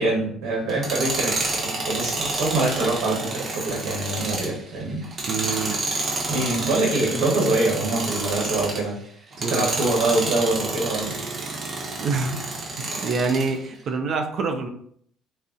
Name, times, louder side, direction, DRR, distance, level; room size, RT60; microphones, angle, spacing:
voice 1, 0.0-5.0 5.4-5.8 6.3-9.0 9.5-11.1, right 2 dB, 75° right, -3 dB, 0.9 m, -24 dB
Tools, 0.7-8.9 9.3-13.5, right 2 dB, 35° right, 0.8 m, -29 dB
voice 2, 5.3-5.8 9.4-9.8 12.0-12.5 12.8-14.7, right 4 dB, 55° right, 6 dB, 0.5 m, -26 dB
2.5 x 2.0 x 3.6 m, 0.64 s
supercardioid pair, 80°, 0 cm